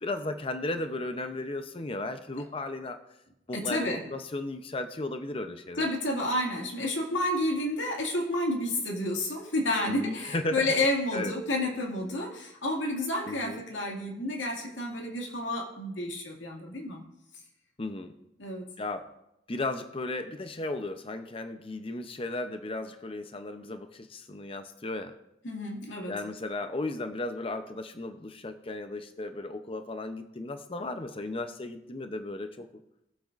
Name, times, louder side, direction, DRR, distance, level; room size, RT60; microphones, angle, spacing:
voice 1, 0.0-3.0 3.5-5.9 9.9-10.8 11.1-11.3 13.2-13.6 17.8-18.1 18.8-19.1 19.5-25.1 26.1-32.7, left 2 dB, 30° left, 8 dB, 0.6 m, -35 dB
voice 2, 3.5-4.0 5.8-17.0 18.4-18.7 25.4-26.1, left 1 dB, 75° left, 0 dB, 2.2 m, -30 dB
19.5 x 7.7 x 2.5 m, 0.85 s
head